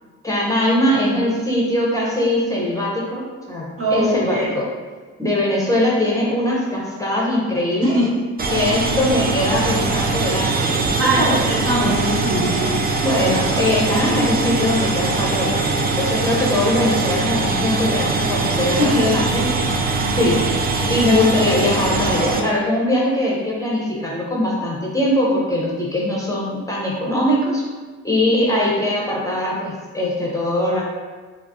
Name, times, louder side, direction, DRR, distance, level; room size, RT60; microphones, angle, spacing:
voice 1, 0.2-4.6 5.2-7.9 8.5-10.9 11.2-11.4 13.0-19.4 20.2-20.4 20.9-27.6 28.0-30.9, left 1 dB, 10° left, -5 dB, 0.7 m, -21 dB
voice 2, 3.8-4.5 7.8-8.1 8.5-8.6 11.0-12.7 18.7-19.2 19.7-19.8, equal, 50° right, -5 dB, 1.1 m, -21 dB
Washing machine work, 8.4-22.4, right 3 dB, 30° right, 0.4 m, -22 dB
4.9 x 2.1 x 2.7 m, 1.4 s
cardioid pair, 90°, 30 cm